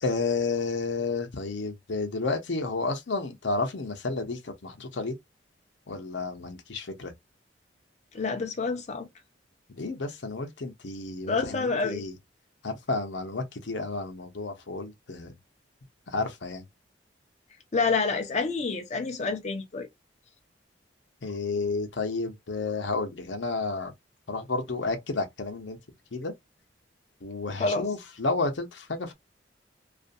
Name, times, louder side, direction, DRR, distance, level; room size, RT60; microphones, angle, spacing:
voice 1, 0.0-5.2 5.9-7.1 9.7-12.2 12.6-15.3 16.1-16.6 21.2-23.9 24.3-25.8 26.1-26.3 27.2-29.1, left 3 dB, 85° left, 0.7 m, -31 dB
voice 2, 8.1-9.1 11.3-12.0 17.7-19.9 27.6-27.9, left 4 dB, 40° left, 0.6 m, -28 dB
2.5 x 2.4 x 2.5 m
head